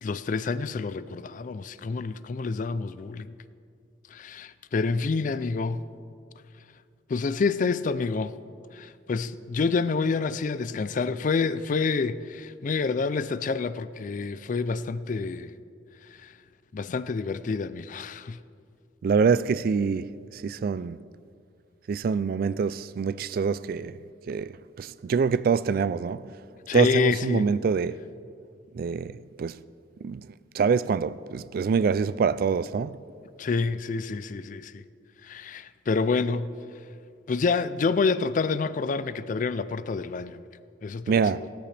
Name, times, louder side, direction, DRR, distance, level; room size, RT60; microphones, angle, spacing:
voice 1, 0.0-3.3 4.1-5.9 7.1-8.3 8.7-15.5 16.2-16.3 16.7-18.4 26.7-27.5 33.4-34.8 35.2-36.5 37.3-40.4 40.8-41.5, left 4 dB, 45° left, 0.4 m, -28 dB
voice 2, 19.0-21.0 21.9-24.0 24.3-24.5 24.8-26.2 26.7-28.0 28.8-29.1 29.4-29.6 30.0-30.2 30.5-33.0 41.1-41.4, right 5 dB, 50° right, 0.3 m, -25 dB
16.0 x 13.5 x 3.4 m
head